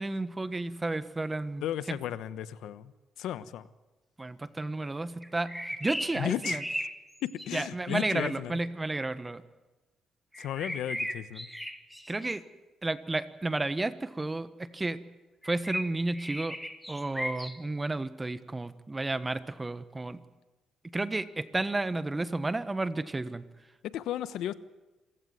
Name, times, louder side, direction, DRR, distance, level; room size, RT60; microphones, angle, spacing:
voice 1, 0.0-2.0 4.2-6.6 7.5-9.4 12.1-12.4 12.8-15.0 15.4-16.6 16.9-20.2 20.8-23.4, right 2 dB, 20° right, 13 dB, 1.3 m, -32 dB
voice 2, 1.6-2.9 3.2-3.7 6.2-6.6 7.2-8.6 10.4-11.5 23.8-24.5, left 11 dB, 85° left, 14 dB, 1.0 m, -34 dB
sound 1, 5.2-8.2 10.3-12.3 15.4-17.6, equal, ahead, 2.0 m, -36 dB
27.0 x 15.5 x 9.4 m, 1.2 s
cardioid pair, 90°, 0 cm